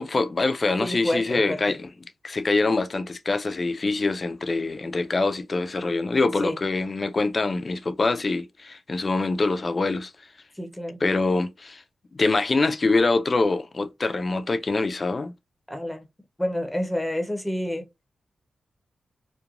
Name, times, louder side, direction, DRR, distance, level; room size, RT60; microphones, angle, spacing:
voice 1, 0.0-1.9 2.2-10.1 11.0-11.8 12.1-15.3, left 3 dB, 45° left, 0.4 m, -24 dB
voice 2, 0.8-1.8 6.4-6.6 10.6-11.0 15.7-16.1 16.4-17.9, left 1 dB, 5° left, 0.6 m, -28 dB
3.0 x 2.1 x 2.4 m
cardioid pair, 60°, 0 cm